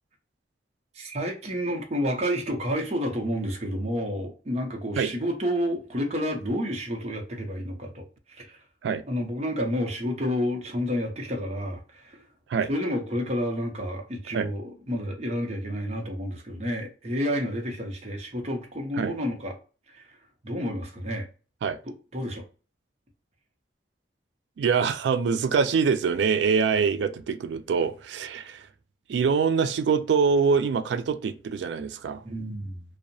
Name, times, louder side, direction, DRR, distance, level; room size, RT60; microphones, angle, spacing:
voice 1, 0.9-8.6 9.1-12.3 12.7-19.6 19.9-20.0 20.4-21.3 21.8-22.4 32.2-32.8, equal, 40° right, 0.6 m, -30 dB
voice 2, 24.6-28.7 29.1-32.2, right 5 dB, 80° right, 0.3 m, -24 dB
2.6 x 2.0 x 2.6 m
head